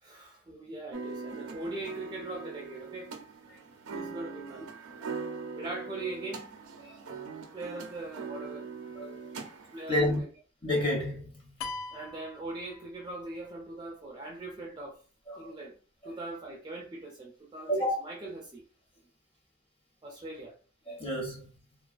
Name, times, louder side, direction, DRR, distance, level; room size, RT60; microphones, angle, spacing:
voice 1, 0.0-3.2 3.9-4.6 5.6-6.5 7.5-9.3 9.7-10.3 11.9-15.0 15.4-15.8 16.0-18.6 20.0-20.5, right 2 dB, 20° right, 0.3 m, -41 dB
sound 1, 0.9-10.2, right 5 dB, 80° right, 0.5 m, -42 dB
voice 2, 9.0-9.3 9.9-10.2 10.6-11.5 15.3-15.5 16.0-16.1 17.7-18.0 20.9-21.6, left 1 dB, 25° left, 0.8 m, -30 dB
sound 2, 11.6-13.3, left 3 dB, 80° left, 0.3 m, -41 dB
2.3 x 2.2 x 2.4 m
head